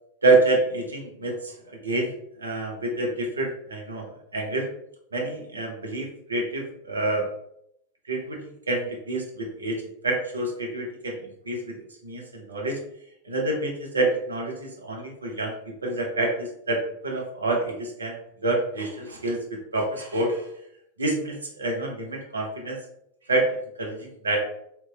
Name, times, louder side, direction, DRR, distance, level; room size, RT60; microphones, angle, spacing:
voice 1, 0.2-2.1 2.4-4.1 4.3-4.7 5.1-7.3 8.1-8.4 8.7-11.8 12.0-12.8 13.2-15.5 15.8-18.1 18.4-19.4 19.7-20.5 21.0-22.8 23.3-23.5 23.8-24.4, right 2 dB, 75° right, 0 dB, 0.6 m, -27 dB
2.9 x 2.8 x 2.2 m, 0.75 s
figure-of-eight pair, 90°, 0 cm